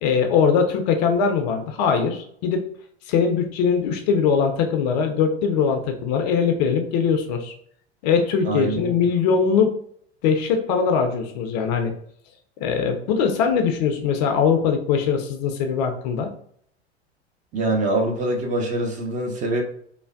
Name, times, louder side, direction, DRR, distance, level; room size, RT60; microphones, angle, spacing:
voice 1, 0.0-2.6 3.1-7.5 8.0-9.8 10.2-11.9 12.6-16.3, left 6 dB, 40° left, 5 dB, 0.4 m, -21 dB
voice 2, 8.4-8.9 17.5-19.6, right 2 dB, 25° right, 2 dB, 0.5 m, -24 dB
3.2 x 2.1 x 2.2 m, 0.64 s
figure-of-eight pair, 80°, 33 cm